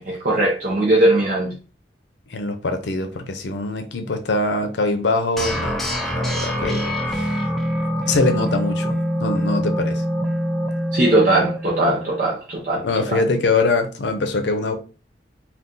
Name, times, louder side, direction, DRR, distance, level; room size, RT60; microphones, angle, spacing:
voice 1, 0.0-1.5 10.9-13.2, right 1 dB, 45° right, 0.6 m, -19 dB
voice 2, 2.3-7.3 8.1-10.0 12.8-14.7, left 3 dB, 80° left, 0.6 m, -23 dB
sound 1, 5.4-12.3, equal, ahead, 0.3 m, -24 dB
2.6 x 2.3 x 3.7 m
head